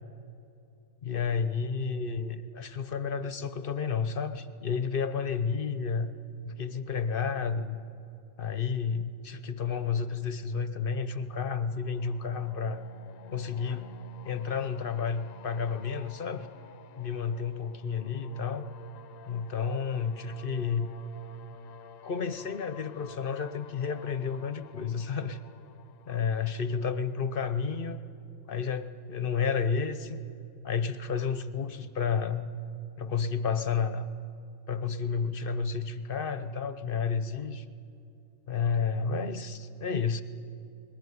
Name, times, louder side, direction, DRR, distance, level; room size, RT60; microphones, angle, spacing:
voice 1, 1.0-6.1 6.4-7.8 8.4-12.8 13.3-13.9 14.2-16.5 17.0-18.7 19.3-20.9 22.0-25.4 26.1-28.0 28.5-30.2 30.6-32.5 33.0-34.1 34.7-37.6 38.5-40.2, left 6 dB, 45° left, 11 dB, 0.9 m, -31 dB
sound 1, 11.8-27.6, left 7 dB, 70° left, 1.1 m, -52 dB
20.0 x 18.5 x 9.6 m, 2.7 s
omnidirectional pair, 1.4 m